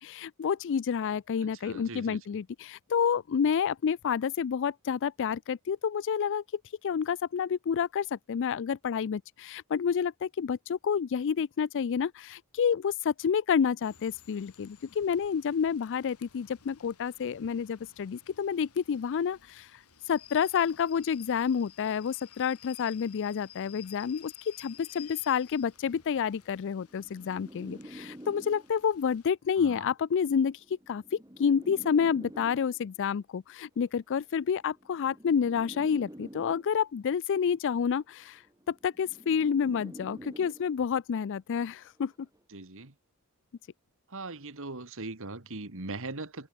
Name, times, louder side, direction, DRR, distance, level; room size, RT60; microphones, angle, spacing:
voice 1, 0.0-19.7 20.1-30.6 30.9-38.4 38.7-42.1, left 7 dB, 55° left, 0.4 m, -29 dB
voice 2, 1.4-2.3 29.6-29.9 42.5-42.9 44.1-46.5, right 3 dB, 65° right, 2.2 m, -40 dB
Rain / Train, 13.8-29.3, left 10 dB, 85° left, 5.7 m, -55 dB
sound 1, 24.8-25.0 25.9-29.0 30.0-33.0 34.0-37.0 38.0-41.0 42.0-42.4, equal, 15° right, 5.8 m, -48 dB
head